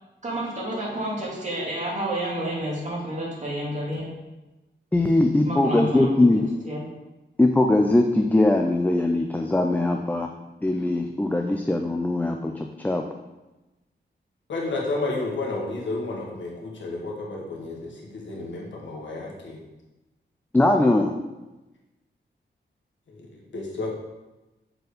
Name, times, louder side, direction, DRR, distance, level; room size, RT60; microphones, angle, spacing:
voice 1, 0.2-4.1 5.4-6.8, right 1 dB, 40° right, -5 dB, 2.3 m, -30 dB
voice 2, 4.9-6.4 7.4-10.3 10.6-13.0 20.5-21.1, left 2 dB, 10° left, 3 dB, 0.3 m, -21 dB
voice 3, 14.5-19.6 23.1-23.3 23.5-23.9, left 2 dB, 85° left, -2 dB, 1.6 m, -31 dB
6.5 x 4.4 x 5.1 m, 1.1 s
wide cardioid pair, 150°, 19 cm